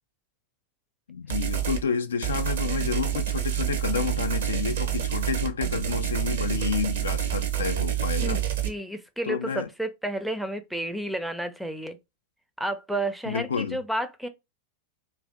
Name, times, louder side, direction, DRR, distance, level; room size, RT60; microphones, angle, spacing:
voice 1, 1.1-8.4 9.3-9.7 13.3-13.8, left 6 dB, 70° left, 0.3 m, -30 dB
sound 1, 1.3-1.8 2.2-8.7, right 11 dB, 60° right, 0.6 m, -27 dB
voice 2, 8.2-12.0 12.6-14.3, right 1 dB, ahead, 0.5 m, -31 dB
2.6 x 2.4 x 3.3 m
figure-of-eight pair, 90°, 0 cm